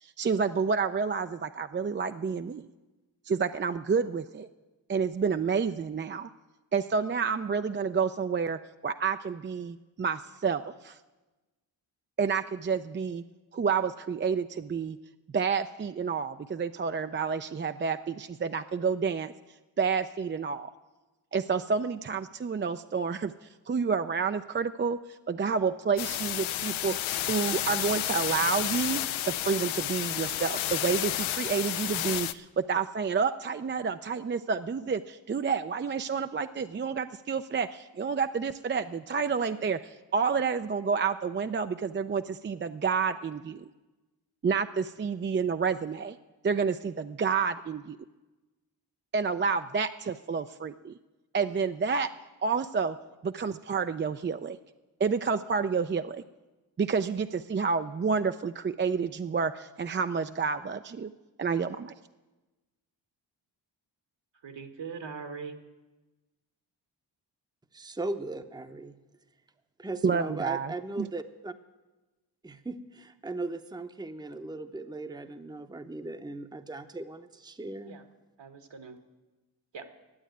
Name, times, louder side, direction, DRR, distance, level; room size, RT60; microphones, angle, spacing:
voice 1, 0.0-2.7 3.3-4.5 4.9-6.3 6.7-11.0 12.2-13.2 13.5-15.0 15.3-19.3 19.8-20.7 21.3-27.0 27.2-39.8 40.1-43.6 44.4-46.2 46.4-48.0 49.1-50.9 51.3-52.1 52.4-53.0 53.2-54.6 55.0-56.2 56.8-61.1 61.4-61.9 70.0-71.1, right 5 dB, 25° right, 9 dB, 0.4 m, -29 dB
sound 1, 26.0-32.3, left 13 dB, 80° left, 0.6 m, -31 dB
voice 2, 64.4-65.5 77.8-78.0 78.4-79.0 79.7-79.9, right 5 dB, 65° right, 7 dB, 1.5 m, -41 dB
voice 3, 67.7-69.0 69.8-71.5 72.4-78.0, right 2 dB, 10° right, 8 dB, 0.8 m, -38 dB
11.0 x 8.2 x 9.1 m, 1.1 s
supercardioid pair, 50°, 47 cm